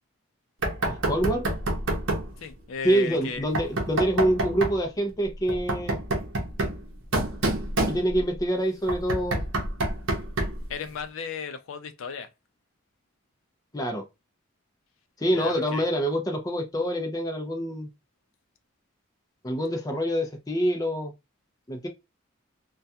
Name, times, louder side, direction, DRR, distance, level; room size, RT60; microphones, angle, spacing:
Knock, 0.6-2.3 3.5-4.8 5.5-8.4 8.9-10.7, right 1 dB, 65° right, 0.7 m, -28 dB
voice 1, 0.9-1.5 2.8-6.0 7.9-9.4 13.7-14.0 15.2-17.9 19.4-21.1 21.7-21.9, right 1 dB, 20° left, 0.4 m, -26 dB
voice 2, 2.4-3.4 10.7-12.3 15.3-15.9, left 5 dB, 80° left, 0.4 m, -35 dB
2.3 x 2.2 x 2.6 m
head